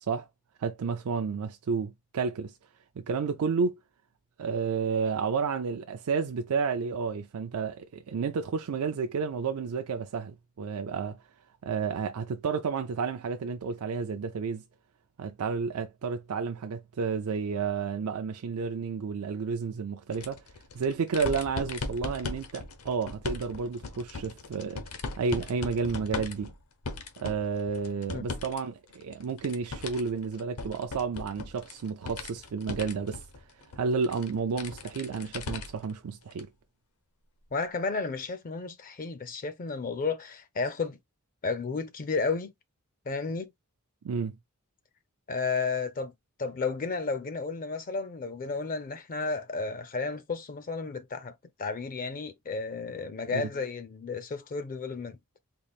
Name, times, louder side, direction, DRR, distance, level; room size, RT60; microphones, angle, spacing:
voice 1, 0.6-2.6 3.0-3.8 4.4-11.2 11.6-14.6 15.2-20.4 20.7-26.5 27.2-33.4 33.8-36.5 44.0-44.4 53.3-53.5, right 5 dB, 75° right, 0.4 m, -31 dB
sound 1, 20.1-28.6 28.9-35.9 36.3-36.4 37.6-37.7, left 3 dB, 70° left, 0.8 m, -39 dB
voice 2, 37.5-41.0 41.4-42.5 43.1-43.5 45.3-46.1 46.4-55.2, left 4 dB, 40° left, 0.4 m, -32 dB
3.8 x 2.4 x 3.4 m
head